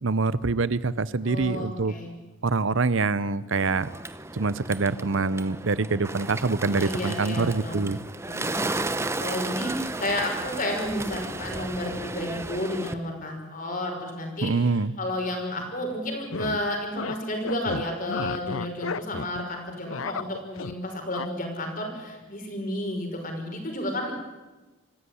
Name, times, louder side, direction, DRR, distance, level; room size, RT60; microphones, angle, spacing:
voice 1, 0.0-1.9 2.4-3.9 4.3-8.0 14.4-14.9, right 3 dB, 65° right, 17 dB, 0.7 m, -25 dB
voice 2, 1.2-2.1 6.7-7.8 8.3-8.5 9.2-24.1, left 1 dB, 40° left, 3 dB, 5.8 m, -31 dB
Bird, 3.5-12.9, right 2 dB, 10° right, 0.8 m, -34 dB
sound 1, 16.1-16.6 16.9-17.2 17.4-19.4 19.7-20.7 21.1-21.3, left 5 dB, 75° left, 0.7 m, -33 dB
25.5 x 16.0 x 9.9 m, 1.2 s
head